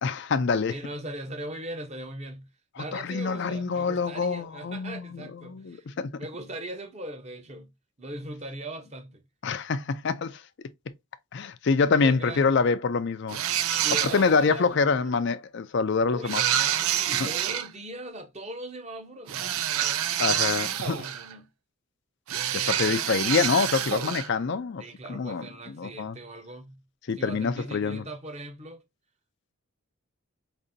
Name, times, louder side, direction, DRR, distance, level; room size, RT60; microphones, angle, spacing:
voice 1, 0.0-0.7 2.8-6.1 9.4-10.4 11.3-13.4 14.0-16.4 17.2-17.3 20.2-21.1 22.5-24.8 25.1-25.5 25.8-26.2 27.1-28.0, left 5 dB, 55° left, 0.4 m, -26 dB
voice 2, 0.7-2.5 2.8-5.9 6.2-7.7 8.0-9.2 12.0-12.5 13.8-15.1 16.1-19.6 20.8-21.5 24.8-26.8 27.2-28.8, right 1 dB, 30° right, 0.8 m, -40 dB
sound 1, 13.3-14.5 16.3-17.7 19.3-21.3 22.3-24.3, right 10 dB, 75° right, 0.4 m, -27 dB
5.1 x 2.6 x 2.6 m
head